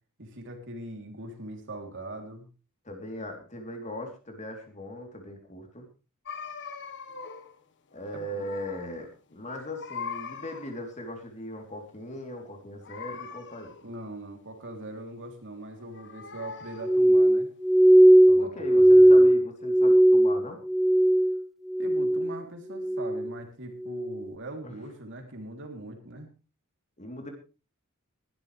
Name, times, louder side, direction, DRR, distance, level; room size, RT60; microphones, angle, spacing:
voice 1, 0.2-2.5 8.2-8.5 13.8-17.5 18.2-19.2 21.8-26.3, right 1 dB, 55° right, 4 dB, 3.5 m, -41 dB
voice 2, 2.8-5.9 7.9-13.7 18.4-20.6 24.6-24.8 27.0-27.3, left 1 dB, 30° left, 3 dB, 3.6 m, -39 dB
cat in heat, 6.3-7.6 7.9-9.0 9.3-10.9 12.8-13.9 15.6-17.1, left 6 dB, 55° left, 1.6 m, -42 dB
Glass, 16.8-21.4 21.7-22.4 22.8-23.3 23.9-24.2, right 1 dB, ahead, 0.7 m, -18 dB
20.5 x 12.5 x 3.4 m, 0.34 s
head